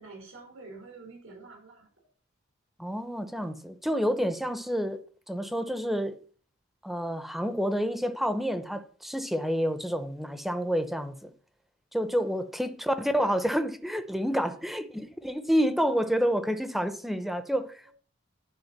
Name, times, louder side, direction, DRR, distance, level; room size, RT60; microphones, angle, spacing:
voice 1, 0.0-1.9 12.7-13.3 14.4-14.6, right 3 dB, 85° right, 5.1 m, -48 dB
voice 2, 2.8-5.0 5.3-6.2 6.8-11.3 11.9-17.9, equal, ahead, 0.7 m, -29 dB
11.0 x 4.9 x 7.2 m
head